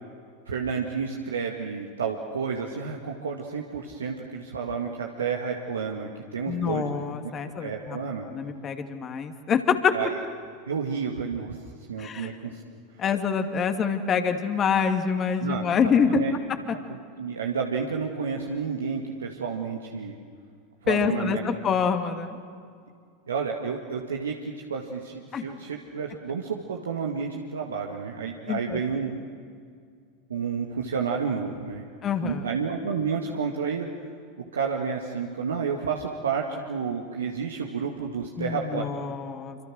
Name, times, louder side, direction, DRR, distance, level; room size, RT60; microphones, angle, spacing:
voice 1, 0.5-6.9 7.6-8.3 9.9-10.1 10.7-11.6 11.9-12.6 15.4-15.6 16.1-16.3 16.9-20.2 20.8-21.4 23.3-29.1 30.3-31.9 32.2-33.9 34.4-38.8, right 6 dB, 80° right, 0 dB, 1.9 m, -30 dB
voice 2, 6.5-8.0 8.2-9.9 12.0-12.3 13.0-16.2 16.7-16.8 20.9-22.4 25.3-25.5 28.5-28.8 32.0-32.4 38.4-39.6, left 6 dB, 30° left, 7 dB, 2.4 m, -26 dB
27.5 x 26.0 x 6.4 m, 2.2 s
figure-of-eight pair, 90°, 0 cm